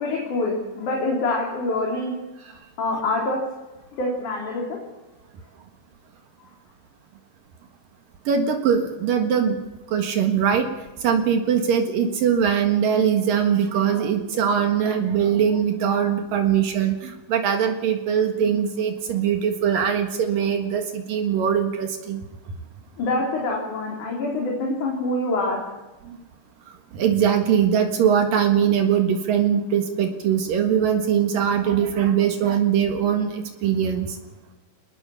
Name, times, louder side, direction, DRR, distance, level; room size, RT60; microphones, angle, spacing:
voice 1, 0.0-2.1 2.8-3.4 4.0-4.8 23.0-25.6, left 2 dB, 60° left, -1 dB, 4.9 m, -25 dB
voice 2, 8.3-10.7 11.0-22.2 26.1-26.2 26.9-34.1, right 8 dB, 70° right, 5 dB, 3.3 m, -21 dB
25.0 x 19.5 x 7.1 m, 1.1 s
omnidirectional pair, 4.1 m